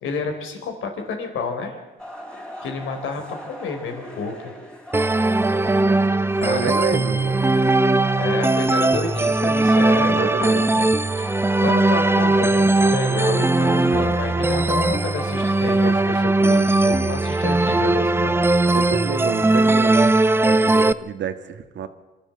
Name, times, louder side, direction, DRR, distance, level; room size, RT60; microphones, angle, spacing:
voice 1, 0.0-1.8 2.6-4.5 6.4-6.7 8.1-18.4, left 4 dB, 85° left, 4 dB, 4.0 m, -30 dB
sound 1, 2.0-16.8, equal, 5° left, 3.3 m, -39 dB
sound 2, 4.9-20.9, right 2 dB, 10° right, 0.7 m, -19 dB
voice 2, 6.4-7.6 9.9-10.8 18.7-21.9, right 8 dB, 65° right, 9 dB, 1.7 m, -29 dB
26.0 x 13.0 x 7.8 m, 1.2 s
cardioid pair, 90°, 20 cm